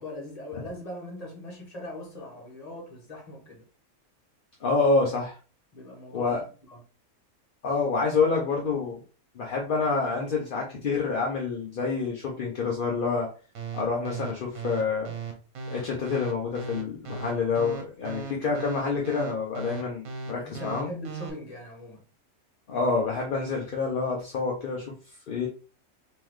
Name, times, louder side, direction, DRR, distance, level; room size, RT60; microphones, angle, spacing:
voice 1, 0.0-3.7 5.7-6.4 6.7-6.8 20.4-22.0, left 1 dB, 30° left, 1.3 m, -40 dB
voice 2, 4.6-5.3 6.1-6.4 7.6-9.0 9.3-13.3 13.7-15.1 15.7-20.9 22.7-24.9 25.3-25.5, left 4 dB, 50° left, 0.7 m, -27 dB
sound 1, 13.6-21.3, right 5 dB, 70° right, 1.3 m, -36 dB
3.8 x 3.1 x 3.1 m
omnidirectional pair, 1.5 m